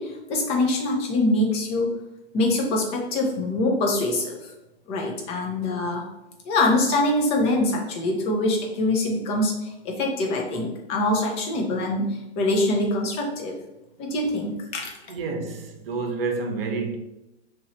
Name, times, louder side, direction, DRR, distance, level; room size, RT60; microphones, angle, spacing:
voice 1, 0.0-1.9 2.3-4.5 4.9-6.0 6.4-13.5 14.0-14.9, left 2 dB, 20° left, 0.5 m, -24 dB
voice 2, 15.1-17.0, right 4 dB, 55° right, 0.8 m, -29 dB
3.0 x 2.6 x 4.2 m
hypercardioid pair, 130°, 34 cm